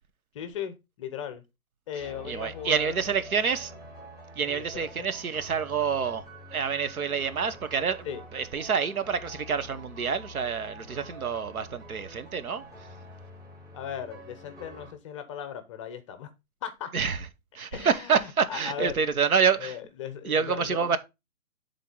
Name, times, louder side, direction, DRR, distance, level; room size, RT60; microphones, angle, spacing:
voice 1, 0.3-1.4 1.9-2.9 4.5-5.1 8.0-8.2 13.7-16.3 16.6-16.9 17.7-19.0 19.6-20.8, left 9 dB, 20° left, 0.6 m, -37 dB
sound 1, 2.0-14.9, equal, 5° right, 5.1 m, -46 dB
voice 2, 2.0-3.7 4.4-6.3 6.5-12.6 16.9-17.3 17.5-19.8 20.2-21.0, right 6 dB, 75° right, 1.1 m, -27 dB
11.0 x 3.7 x 3.8 m
figure-of-eight pair, 130°, 43 cm